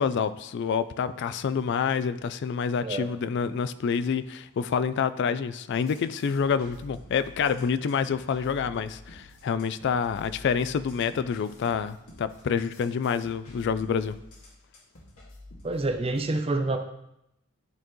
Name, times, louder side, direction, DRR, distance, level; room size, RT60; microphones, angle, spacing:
voice 1, 0.0-14.2, left 6 dB, 55° left, 14 dB, 0.3 m, -27 dB
sound 1, 5.7-16.2, left 1 dB, 75° left, 2.1 m, -49 dB
voice 2, 15.6-16.8, right 2 dB, 25° right, 6 dB, 0.6 m, -27 dB
12.5 x 4.4 x 3.0 m, 0.84 s
head